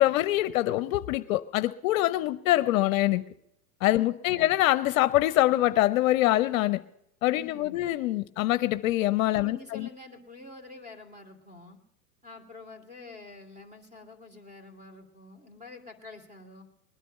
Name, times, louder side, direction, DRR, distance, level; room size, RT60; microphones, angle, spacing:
voice 1, 0.0-3.2 3.8-6.8 7.2-9.9, left 15 dB, 60° left, 13 dB, 0.7 m, -24 dB
voice 2, 4.0-4.5 7.4-7.9 9.3-11.8 12.2-16.7, left 2 dB, 15° right, 8 dB, 2.7 m, -48 dB
20.0 x 10.0 x 5.5 m, 0.79 s
hypercardioid pair, 120°, 46 cm